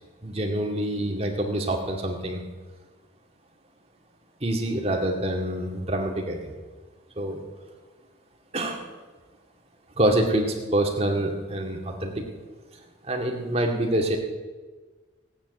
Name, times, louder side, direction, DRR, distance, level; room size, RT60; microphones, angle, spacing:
voice 1, 0.2-2.4 4.4-6.6 7.2-7.4 8.5-8.9 10.0-12.1 13.0-14.2, right 1 dB, 35° right, 1 dB, 2.1 m, -26 dB
17.0 x 8.9 x 8.1 m, 1.4 s
head